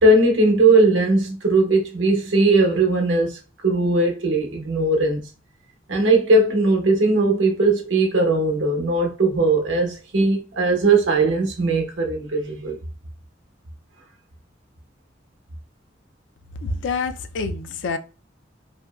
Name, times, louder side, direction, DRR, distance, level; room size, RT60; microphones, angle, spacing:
voice 1, 0.0-5.3 5.9-12.8, right 2 dB, 85° right, 0.8 m, -19 dB
voice 2, 16.6-18.0, left 4 dB, 75° left, 0.4 m, -27 dB
2.8 x 2.6 x 2.2 m
head